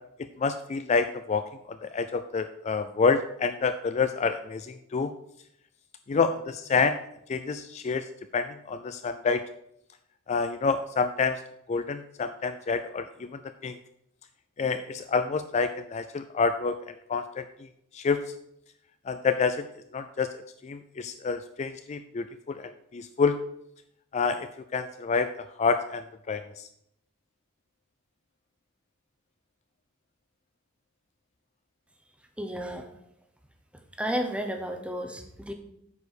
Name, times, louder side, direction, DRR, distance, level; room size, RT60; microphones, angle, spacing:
voice 1, 0.4-5.1 6.1-7.0 7.3-8.1 8.3-9.4 10.3-11.4 11.7-13.8 14.6-17.5 17.9-18.2 19.1-19.6 19.9-20.3 20.6-23.4 24.1-26.7, left 5 dB, 35° left, 9 dB, 0.3 m, -28 dB
voice 2, 32.4-32.9 34.0-35.5, equal, 5° right, 5 dB, 0.9 m, -32 dB
8.3 x 4.8 x 6.3 m, 0.77 s
head